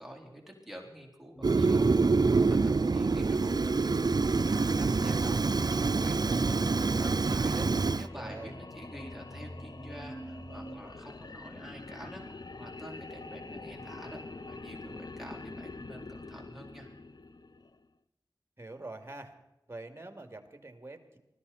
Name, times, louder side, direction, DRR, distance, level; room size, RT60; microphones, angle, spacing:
voice 1, 0.0-14.2 14.5-16.9, equal, 5° right, -1 dB, 4.0 m, -48 dB
sound 1, 1.3-10.8, equal, 30° left, 2.1 m, -45 dB
Fire, 1.4-8.1, right 4 dB, 60° right, 0.5 m, -26 dB
sound 2, 7.5-17.9, left 3 dB, 60° left, 0.8 m, -45 dB
voice 2, 8.1-8.5 18.6-19.3 19.7-21.2, right 2 dB, 30° right, 6 dB, 2.6 m, -45 dB
20.5 x 14.5 x 4.2 m, 0.92 s
wide cardioid pair, 40°, 8 cm